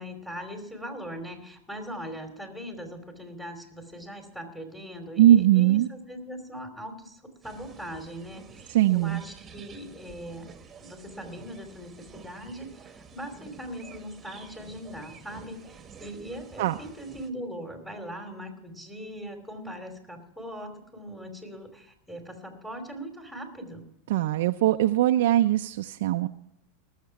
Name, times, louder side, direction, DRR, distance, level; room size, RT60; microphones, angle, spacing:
voice 1, 0.0-10.5 10.8-23.9, equal, 5° left, 3 dB, 2.9 m, -40 dB
voice 2, 5.2-5.9 8.7-9.2 16.6-16.8 24.1-26.3, right 13 dB, 75° right, 6 dB, 0.5 m, -21 dB
sound 1, 7.4-17.3, right 6 dB, 20° right, 1.3 m, -49 dB
19.0 x 7.4 x 5.8 m, 0.79 s
hypercardioid pair, 115°, 0 cm